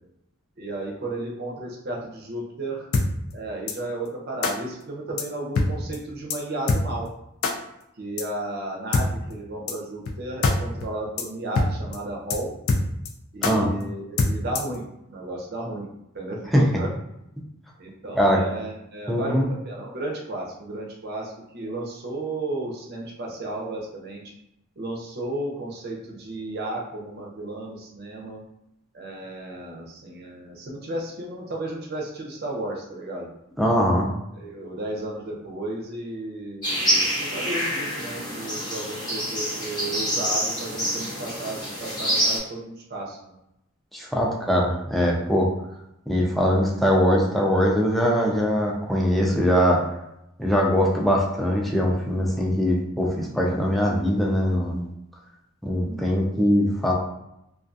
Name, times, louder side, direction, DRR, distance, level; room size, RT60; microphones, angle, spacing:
voice 1, 0.6-2.9 3.3-7.0 8.0-12.5 13.3-15.9 16.1-16.9 17.8-24.2 24.8-28.4 28.9-33.3 34.3-43.4 55.8-56.2, right 2 dB, 50° right, -2 dB, 0.6 m, -33 dB
sound 1, 2.9-3.1 3.7-3.8 4.4-4.5 5.2-5.3 5.6-5.7 5.9-6.0 6.3-6.4 6.7-6.8 7.4-7.5 8.2-8.3 8.9-9.1 9.7-9.8 10.1-10.2 10.4-10.6 10.8-10.9 11.2-11.3 11.6-11.7 11.9-12.0 12.3-12.4 12.7-13.1 13.4-13.5 14.2-14.8, left 3 dB, 75° left, 0.4 m, -22 dB
voice 2, 19.1-19.5 33.6-34.1 43.9-45.5 46.1-49.8 50.4-54.8 55.6-56.9, equal, ahead, -2 dB, 0.4 m, -21 dB
sound 2, 36.6-42.4, equal, 20° left, 0.8 m, -26 dB
2.3 x 2.3 x 2.5 m, 0.84 s
head